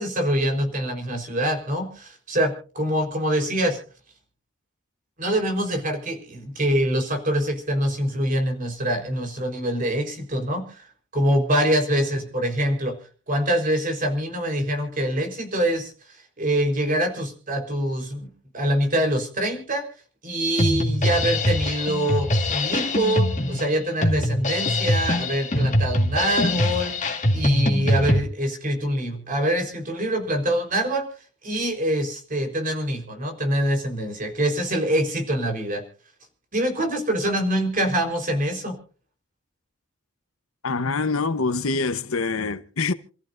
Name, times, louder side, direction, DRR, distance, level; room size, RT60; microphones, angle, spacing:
voice 1, 0.0-3.8 5.2-10.9 11.1-13.0 13.3-15.9 16.4-18.3 18.5-19.8 20.2-26.9 27.3-31.1 31.4-35.8 36.5-38.8, right 1 dB, 40° right, 4.1 m, -24 dB
Drum kit, 20.6-28.2, left 1 dB, 35° left, 2.2 m, -23 dB
voice 2, 40.6-42.9, left 4 dB, 85° left, 1.0 m, -25 dB
28.5 x 14.5 x 2.6 m
head